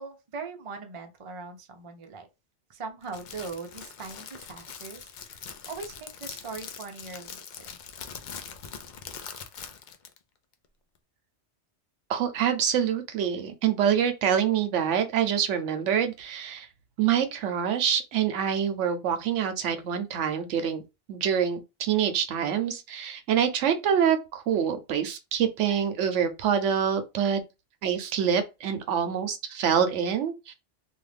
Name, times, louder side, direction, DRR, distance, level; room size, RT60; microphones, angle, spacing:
voice 1, 0.0-2.3 2.7-7.4 7.7-7.8, right 4 dB, 35° right, 0.5 m, -40 dB
Crackle, 3.0-10.2, left 7 dB, 60° left, 0.5 m, -42 dB
voice 2, 12.1-16.7 17.0-20.8 21.1-27.4 27.8-30.5, right 8 dB, 85° right, 1.0 m, -26 dB
2.6 x 2.5 x 3.3 m
omnidirectional pair, 1.2 m